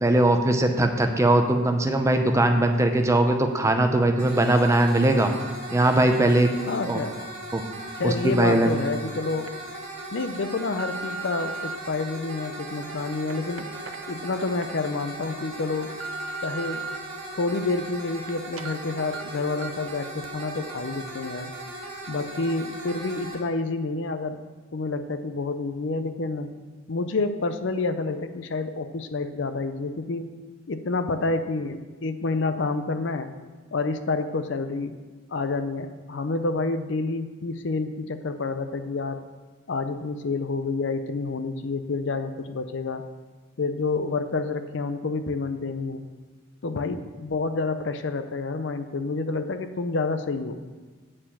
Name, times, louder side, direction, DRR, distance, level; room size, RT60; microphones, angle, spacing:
voice 1, 0.0-5.3 5.7-6.5 6.9-7.0 7.5-7.6 8.0-8.7, right 1 dB, 15° right, 5 dB, 0.6 m, -20 dB
sound 1, 4.2-23.4, right 1 dB, 35° right, 2.3 m, -38 dB
voice 2, 6.7-7.2 8.0-9.5 10.1-13.7 14.1-16.0 16.4-16.9 17.3-21.5 22.1-24.4 24.7-26.5 26.9-30.3 30.7-33.3 33.7-34.9 35.3-39.2 39.7-43.0 43.6-46.0 46.6-50.7, left 3 dB, 60° left, 9 dB, 0.5 m, -28 dB
sound 2, 9.2-9.5 10.1-11.8 12.4-14.7 15.1-15.2 15.7-17.0 17.4-18.3 18.6-18.7 19.1-19.2 19.6-19.9 20.2-20.3, right 3 dB, 75° right, 0.6 m, -38 dB
8.6 x 4.7 x 7.3 m, 1.4 s
head